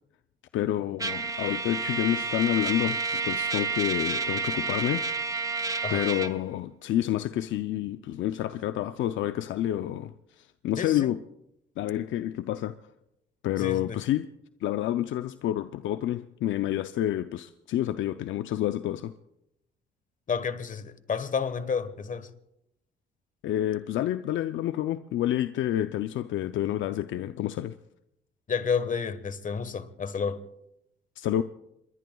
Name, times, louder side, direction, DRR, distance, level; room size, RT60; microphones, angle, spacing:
voice 1, 0.5-5.1 5.9-11.2 11.8-12.8 13.4-14.3 14.6-19.1 23.4-27.7 31.2-31.4, left 12 dB, 75° left, 0.5 m, -29 dB
Trumpet, 1.0-6.3, right 4 dB, 15° right, 0.9 m, -30 dB
voice 2, 10.8-11.1 13.6-14.0 20.3-22.3 28.5-30.4, left 6 dB, 40° left, 1.3 m, -30 dB
27.0 x 22.0 x 2.3 m
cardioid pair, 90°, 20 cm